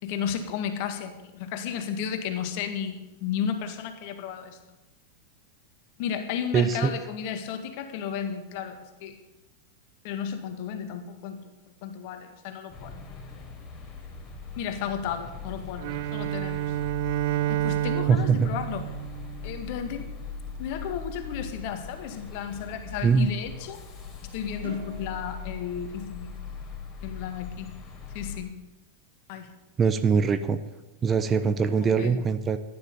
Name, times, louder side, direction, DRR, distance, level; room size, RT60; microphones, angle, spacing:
voice 1, 0.0-4.6 6.0-9.2 10.0-11.4 11.8-13.0 14.6-16.7 17.5-18.9 19.4-20.1 20.6-23.8 24.2-26.4 27.0-27.7 28.1-28.6 29.3-29.5 32.0-32.2, left 8 dB, 45° left, 7 dB, 2.0 m, -33 dB
voice 2, 6.5-6.9 18.1-18.5 23.0-23.3 29.8-30.6 31.0-32.6, right 5 dB, 20° right, 11 dB, 0.8 m, -22 dB
sound 1, 12.7-28.4, left 5 dB, 25° left, 3.7 m, -41 dB
Bowed string instrument, 15.8-20.0, right 15 dB, 50° right, 0.5 m, -29 dB
sound 2, 24.6-27.2, right 4 dB, 70° right, 5.8 m, -46 dB
14.5 x 10.5 x 7.0 m, 1.0 s
figure-of-eight pair, 90°, 0 cm